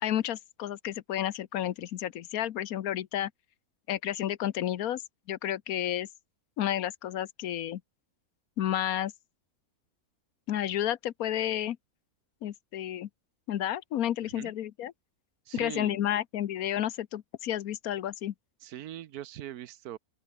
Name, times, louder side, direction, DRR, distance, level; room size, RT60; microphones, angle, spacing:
voice 1, 0.0-3.3 3.9-5.0 5.3-6.1 6.6-7.8 8.6-9.1 10.5-11.8 12.4-13.1 13.5-14.9 15.5-18.3, left 11 dB, 75° left, 1.3 m, -31 dB
voice 2, 15.5-16.0 18.6-20.0, right 12 dB, 90° right, 1.3 m, -41 dB
open air
omnidirectional pair, 1.5 m